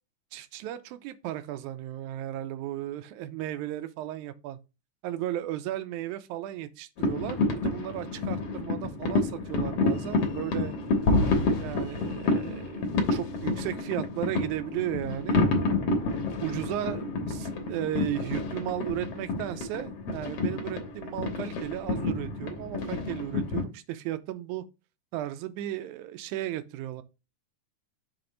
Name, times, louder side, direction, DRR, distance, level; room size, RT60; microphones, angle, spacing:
voice 1, 0.3-4.6 5.0-10.8 11.6-15.4 16.4-24.6 25.1-27.0, right 13 dB, 80° right, 2.0 m, -35 dB
sound 1, 7.0-23.6, left 3 dB, 60° left, 2.0 m, -29 dB
6.0 x 3.5 x 5.1 m
omnidirectional pair, 3.7 m